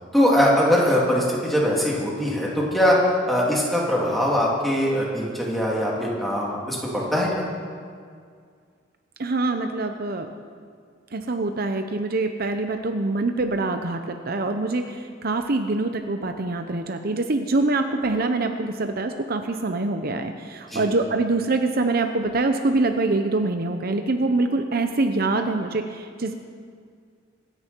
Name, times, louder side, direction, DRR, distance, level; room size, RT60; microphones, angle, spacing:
voice 1, 0.1-3.0 3.3-7.4 20.7-20.9, equal, ahead, -5 dB, 3.3 m, -22 dB
voice 2, 9.2-10.3 11.1-26.3, right 2 dB, 55° right, 6 dB, 0.8 m, -24 dB
26.0 x 10.5 x 4.6 m, 2.1 s
head